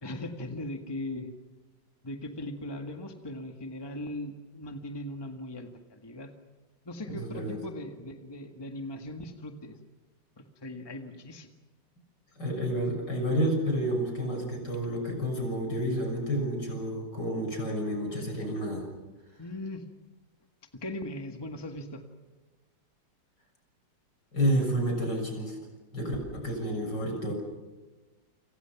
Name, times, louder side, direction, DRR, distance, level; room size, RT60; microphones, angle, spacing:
voice 1, 0.0-1.3 2.0-6.3 6.8-9.8 10.4-11.5 19.4-19.8 20.7-22.0, left 1 dB, 15° left, 4 dB, 1.7 m, -39 dB
voice 2, 7.1-7.6 12.4-18.9 24.3-25.6 25.9-27.3, equal, 65° left, 3 dB, 7.2 m, -30 dB
29.0 x 27.0 x 6.0 m, 1.3 s
omnidirectional pair, 2.0 m